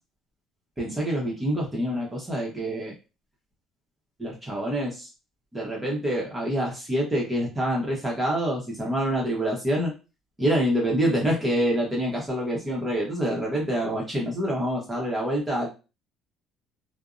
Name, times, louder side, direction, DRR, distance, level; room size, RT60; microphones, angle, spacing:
voice 1, 0.8-2.9 4.2-5.1 5.5-9.9 10.4-15.7, equal, 15° right, -3 dB, 0.9 m, -26 dB
2.5 x 2.0 x 2.5 m, 0.30 s
supercardioid pair, 90°, 0 cm